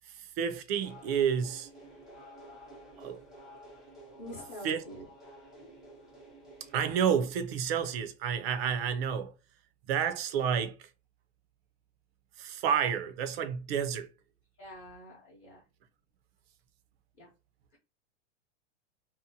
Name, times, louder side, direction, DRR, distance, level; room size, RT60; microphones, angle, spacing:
voice 1, 0.0-1.7 3.0-3.2 4.6-4.8 6.7-9.3 9.9-10.9 12.4-14.1, right 7 dB, 55° right, 0.5 m, -30 dB
sound 1, 0.7-6.9, right 1 dB, ahead, 0.4 m, -51 dB
voice 2, 4.2-5.1 14.6-15.6 17.2-17.3, equal, 25° left, 0.8 m, -46 dB
2.7 x 2.1 x 2.6 m
supercardioid pair, 165°, 36 cm